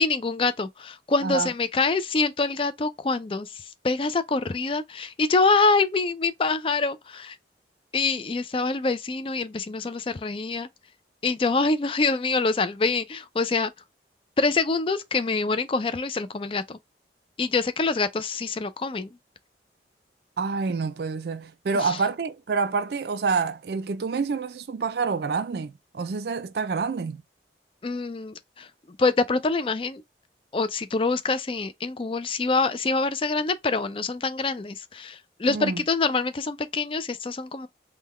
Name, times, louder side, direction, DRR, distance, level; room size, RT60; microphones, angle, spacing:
voice 1, 0.0-7.4 7.9-10.7 11.2-13.7 14.4-16.8 17.4-19.1 21.7-22.0 27.8-28.7 29.0-30.0 30.5-37.7, left 3 dB, 30° left, 0.4 m, -25 dB
voice 2, 1.2-1.5 20.4-27.2 35.5-35.8, right 4 dB, 60° right, 0.4 m, -27 dB
3.7 x 2.2 x 3.1 m
head